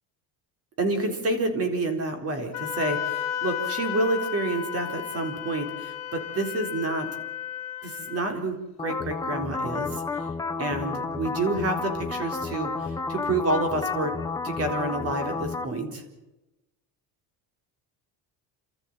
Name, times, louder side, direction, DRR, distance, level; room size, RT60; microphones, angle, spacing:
voice 1, 0.8-7.1 7.8-10.0 10.6-14.1 14.4-16.0, right 2 dB, 35° right, 5 dB, 4.0 m, -29 dB
Wind instrument woodwind instrument, 2.5-8.3, left 10 dB, 40° left, 4.0 m, -33 dB
sound 1, 8.8-15.6, left 4 dB, 10° left, 0.9 m, -31 dB
29.5 x 13.5 x 9.1 m, 1.0 s
cardioid pair, 165°, 41 cm